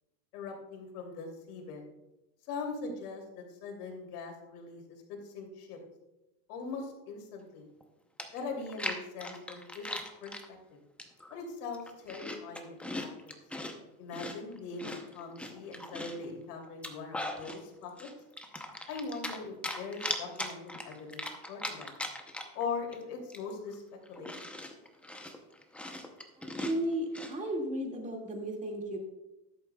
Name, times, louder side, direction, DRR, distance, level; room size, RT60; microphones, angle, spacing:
voice 1, 0.3-1.8 2.5-5.8 6.5-7.7 8.3-9.9 10.2-10.8 11.3-13.3 14.0-18.1 18.9-21.9 22.5-23.8 24.1-24.4, left 4 dB, 70° left, 2 dB, 2.9 m, -41 dB
Chewing mastication, 7.8-7.9 8.2-10.5 11.0-11.3 11.7-13.7 14.1-16.2 16.7-17.6 18.0-19.4 19.6-22.6 22.9-23.0 23.3-27.3, left 1 dB, 5° left, 0.6 m, -39 dB
voice 2, 26.4-29.0, right 1 dB, 15° right, 0 dB, 2.1 m, -34 dB
13.0 x 11.0 x 2.3 m, 0.97 s
supercardioid pair, 140°, 46 cm